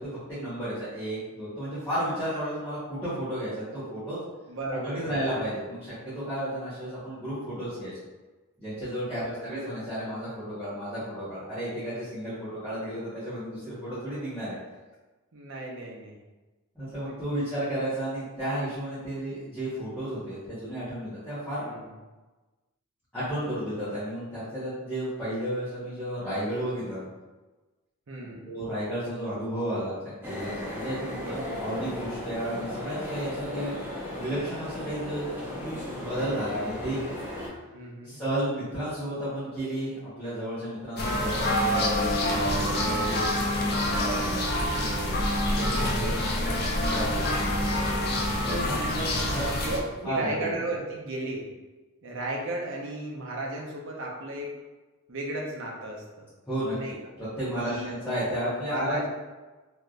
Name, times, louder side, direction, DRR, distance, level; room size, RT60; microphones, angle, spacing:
voice 1, 0.0-4.2 4.8-7.9 8.6-14.5 16.7-21.7 23.1-27.0 28.2-30.0 30.2-33.8 34.1-35.3 35.9-37.0 38.0-45.2 45.6-47.3 48.4-49.7 50.0-50.4 56.5-56.7 57.4-59.1, right 1 dB, 10° left, -15 dB, 1.3 m, -33 dB
voice 2, 4.5-5.4 9.2-9.5 15.3-16.2 17.0-17.4 21.6-21.9 28.1-28.5 31.2-32.1 37.7-38.2 41.0-41.3 45.8-46.7 48.6-49.0 49.3-51.5 52.0-54.6 55.1-56.3 56.8-56.9 57.6-57.9 58.7-59.1, right 2 dB, 60° right, -1 dB, 0.7 m, -35 dB
sound 1, 30.2-37.5, left 1 dB, 10° right, 0.8 m, -36 dB
sound 2, 41.0-49.8, left 1 dB, 45° left, 0.5 m, -26 dB
3.3 x 2.8 x 2.5 m, 1.2 s
head